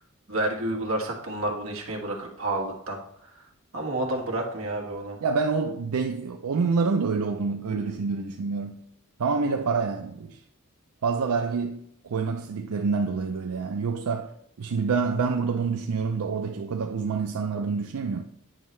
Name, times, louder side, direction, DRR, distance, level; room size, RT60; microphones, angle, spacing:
voice 1, 0.3-3.0 3.7-5.2, right 1 dB, 65° right, 1.4 m, -29 dB
voice 2, 5.2-8.8 9.2-10.4 11.0-18.2, right 4 dB, 90° right, 0.5 m, -27 dB
9.0 x 5.4 x 3.1 m
head